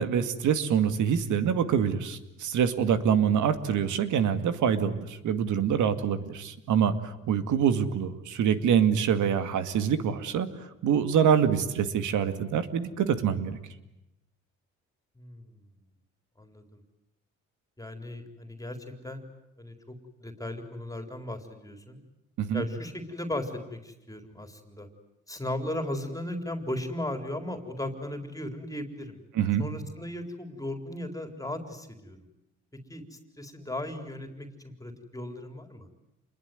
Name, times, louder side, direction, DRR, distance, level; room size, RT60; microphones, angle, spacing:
voice 1, 0.0-10.5 10.8-13.6 22.4-22.6 29.3-29.7, right 8 dB, 75° right, 10 dB, 2.3 m, -25 dB
voice 2, 15.2-15.6 16.4-16.8 17.8-18.8 19.0-19.2 19.6-20.0 20.2-22.0 22.5-24.9 25.3-29.2 29.6-32.2 32.9-35.9, left 1 dB, 10° left, 6 dB, 4.0 m, -36 dB
28.0 x 21.5 x 9.4 m, 0.89 s
cardioid pair, 90°, 30 cm